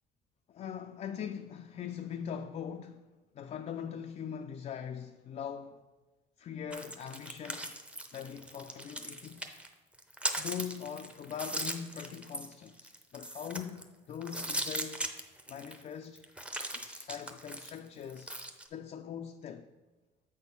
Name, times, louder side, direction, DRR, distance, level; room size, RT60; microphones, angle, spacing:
voice 1, 0.5-5.8 6.4-7.8 8.1-9.5 10.4-15.1 15.5-16.2 16.7-18.3 18.7-19.7, left 8 dB, 45° left, 0.4 m, -41 dB
sound 1, 6.7-9.7 9.9-13.8 14.2-15.8 16.2-18.7, right 1 dB, 5° right, 0.7 m, -39 dB
7.8 x 4.3 x 5.4 m
cardioid pair, 110°, 17 cm